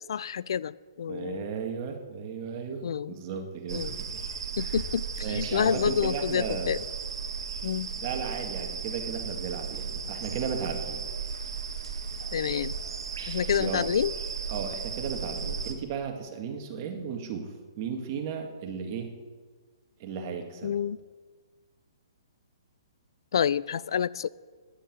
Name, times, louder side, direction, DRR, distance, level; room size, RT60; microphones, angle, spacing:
voice 1, 0.1-1.4 2.8-3.1 3.7-4.0 4.6-6.8 7.6-7.9 12.3-12.7 13.3-14.1 20.6-21.0 23.3-24.3, left 8 dB, 65° left, 21 dB, 0.4 m, -28 dB
voice 2, 1.1-4.2 4.6-4.8 5.2-6.7 7.9-11.0 13.6-13.9 14.5-19.1 20.0-20.8, right 6 dB, 35° right, 4 dB, 2.0 m, -35 dB
sound 1, 3.7-15.7, right 5 dB, 70° right, 1.6 m, -35 dB
10.0 x 9.1 x 8.7 m, 1.5 s
hypercardioid pair, 150°, 3 cm